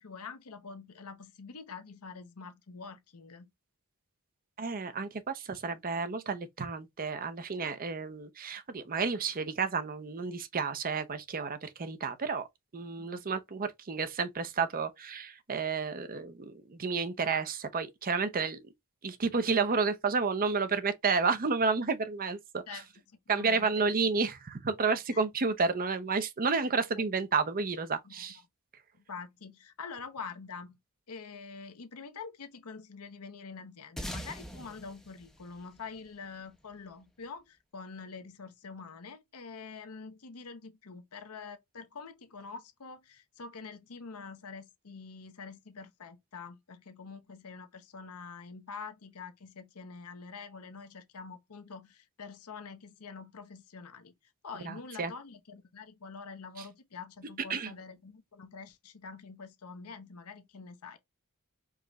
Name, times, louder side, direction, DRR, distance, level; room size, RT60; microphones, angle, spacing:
voice 1, 0.0-3.5 13.0-13.3 22.7-23.9 25.1-25.2 27.0-27.1 28.0-28.4 29.1-30.8 31.1-54.1 54.4-61.0, left 5 dB, 75° left, 0.8 m, -46 dB
voice 2, 4.6-12.5 12.7-18.7 19.0-22.8 23.3-28.4 54.6-55.1 57.5-57.7, right 4 dB, 40° right, 0.7 m, -31 dB
sound 1, 34.0-36.7, equal, ahead, 0.6 m, -43 dB
4.8 x 3.0 x 2.4 m
head